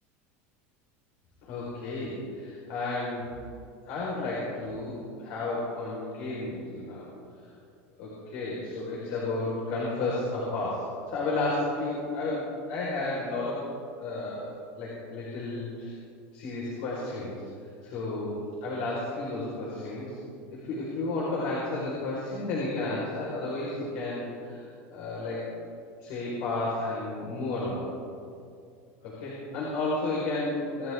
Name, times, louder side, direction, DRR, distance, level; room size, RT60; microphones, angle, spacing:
voice 1, 1.4-3.3 3.8-7.0 8.0-10.8 11.1-13.6 14.0-14.5 14.8-15.9 16.3-17.3 17.8-20.1 20.5-24.6 24.9-25.4 26.0-27.9 29.0-30.9, left 2 dB, 70° left, -5 dB, 5.0 m, -32 dB
26.5 x 12.5 x 3.8 m, 2.4 s
supercardioid pair, 135°, 7 cm